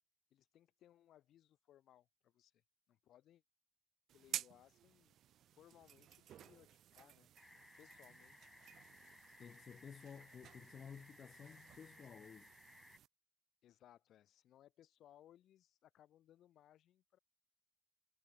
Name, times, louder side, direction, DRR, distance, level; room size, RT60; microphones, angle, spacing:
voice 1, 0.3-3.4 4.1-5.2 5.5-7.3 7.8-8.6 13.6-17.2, left 12 dB, 75° left, 3.6 m, -66 dB
sound 1, 4.1-13.1, right 11 dB, 75° right, 0.3 m, -53 dB
sound 2, 7.4-13.0, left 2 dB, 15° left, 2.0 m, -62 dB
voice 2, 9.4-12.5, left 7 dB, 50° left, 0.6 m, -54 dB
cardioid pair, 90°, 0 cm